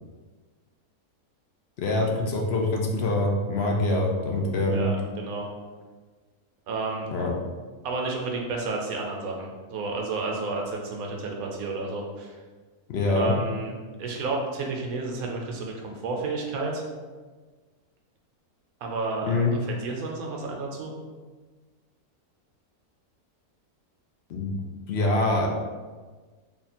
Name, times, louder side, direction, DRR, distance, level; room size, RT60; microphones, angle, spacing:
voice 1, 1.8-4.8 7.1-7.3 12.9-13.3 19.3-19.5 24.3-24.6 24.9-25.5, left 2 dB, 60° left, 0 dB, 0.7 m, -24 dB
voice 2, 4.6-5.4 6.7-7.1 7.8-12.3 13.1-13.7 14.0-16.8 18.8-20.9, right 3 dB, 75° right, 0 dB, 1.1 m, -31 dB
3.5 x 2.3 x 4.1 m, 1.4 s
omnidirectional pair, 1.6 m